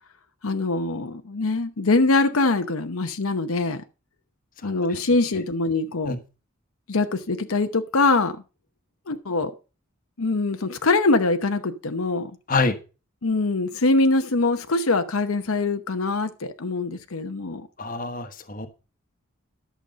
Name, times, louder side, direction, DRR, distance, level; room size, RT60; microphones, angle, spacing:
voice 1, 0.4-3.8 4.6-6.2 6.9-8.4 9.1-9.5 10.2-12.3 13.2-17.7, left 3 dB, 80° left, 0.9 m, -23 dB
voice 2, 17.8-18.7, left 3 dB, 40° left, 1.3 m, -25 dB
11.5 x 7.1 x 5.1 m
head